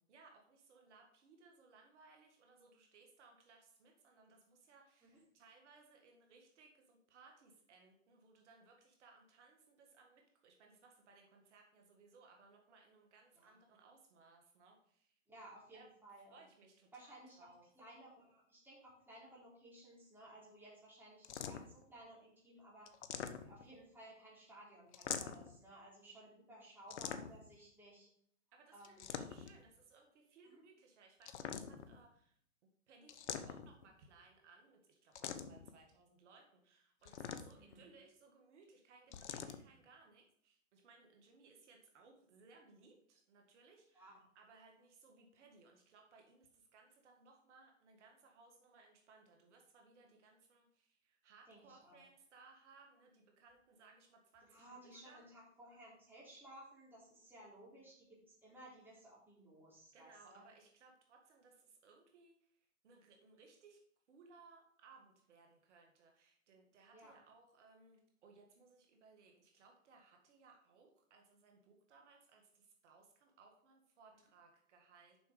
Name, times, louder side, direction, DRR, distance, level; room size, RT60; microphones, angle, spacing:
voice 1, 0.1-15.2 15.7-17.7 28.5-32.4 32.9-54.6 55.0-55.2 59.9-63.8 64.1-75.3, right 4 dB, 60° right, 2 dB, 1.8 m, -64 dB
voice 2, 15.3-16.4 16.9-22.9 23.4-28.1 28.7-29.0 30.4-30.6 37.6-37.8 43.9-44.2 51.5-52.0 54.5-60.4 66.9-67.1, right 1 dB, 5° right, -7 dB, 3.6 m, -58 dB
sound 1, 21.2-21.8 22.9-23.7 24.9-25.6 26.9-27.5 28.8-29.6 31.2-32.0 33.1-33.8 35.1-35.7 37.0-37.7 39.1-39.6, left 8 dB, 60° left, 0.9 m, -44 dB
7.0 x 5.7 x 5.1 m, 0.66 s
hypercardioid pair, 125°, 39 cm